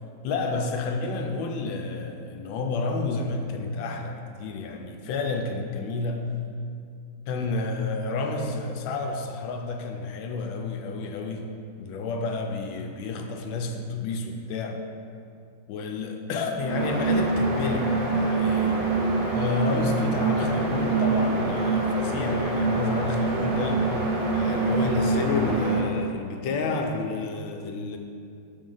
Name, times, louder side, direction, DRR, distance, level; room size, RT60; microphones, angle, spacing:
voice 1, 0.2-6.4 7.3-11.5 11.8-14.8 15.7-18.9 19.3-23.9 24.3-28.0, left 3 dB, 80° left, 4 dB, 1.3 m, -30 dB
sound 1, 16.6-25.9, right 3 dB, 85° right, 1.8 m, -25 dB
6.2 x 4.5 x 3.9 m, 2.4 s
omnidirectional pair, 2.2 m